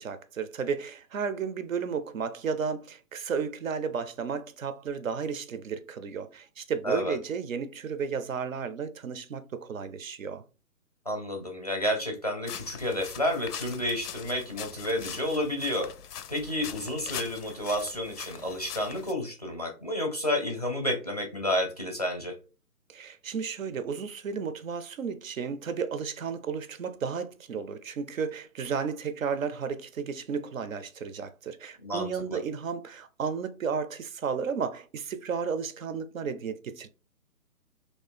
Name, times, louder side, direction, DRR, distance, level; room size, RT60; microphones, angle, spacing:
voice 1, 0.0-10.4 22.9-36.9, right 6 dB, 60° right, 0.5 m, -33 dB
voice 2, 6.8-7.2 11.1-15.9 16.3-22.3 31.8-32.4, left 1 dB, 25° left, 0.5 m, -30 dB
sound 1, 12.5-19.1, left 8 dB, 85° left, 0.6 m, -42 dB
3.1 x 2.7 x 3.3 m
hypercardioid pair, 155°, 45 cm